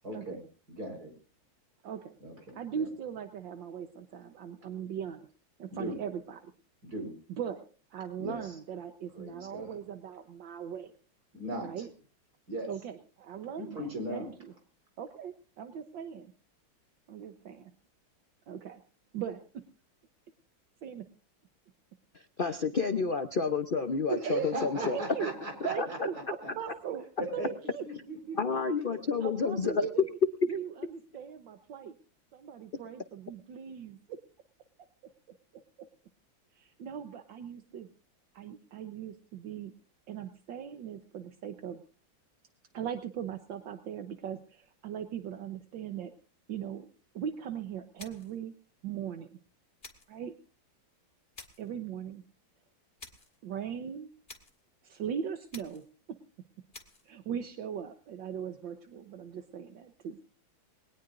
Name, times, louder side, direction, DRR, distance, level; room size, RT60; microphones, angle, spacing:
voice 1, 0.0-0.4 0.7-1.1 2.2-2.9 5.7-6.0 6.8-7.1 8.2-8.5 9.1-9.8 11.3-11.9 12.5-12.7 13.6-14.3 24.1-26.5 27.2-27.5 27.8-28.6 28.9-29.0, right 1 dB, 50° right, 3 dB, 5.0 m, -38 dB
voice 2, 1.8-2.2 2.5-5.3 5.6-6.5 7.3-7.6 7.9-10.9 11.6-11.9 12.7-14.5 15.0-16.3 17.1-17.7 18.5-18.8 19.1-19.6 20.8-21.1 22.4-23.0 24.2-24.5 24.8-25.3 25.6-27.0 27.3-27.8 28.5-28.6 29.2-30.2 30.5-31.9 32.3-34.2 36.5-37.9 38.3-39.7 40.1-41.8 42.7-46.1 46.5-46.9 47.1-48.5 48.8-49.4 50.1-50.4 51.6-52.2 53.4-54.1 54.8-55.8 56.1-56.2 57.0-60.2, right 8 dB, 70° right, 7 dB, 1.7 m, -39 dB
voice 3, 22.4-25.0 25.8-25.9 28.4-29.9, left 5 dB, 65° left, 8 dB, 0.5 m, -30 dB
sound 1, 48.0-48.4 49.8-50.2 51.3-51.7 53.0-53.4 54.3-54.6 55.5-55.9 56.7-57.1, left 3 dB, 30° left, 2.0 m, -50 dB
21.0 x 19.0 x 2.6 m, 0.37 s
omnidirectional pair, 2.1 m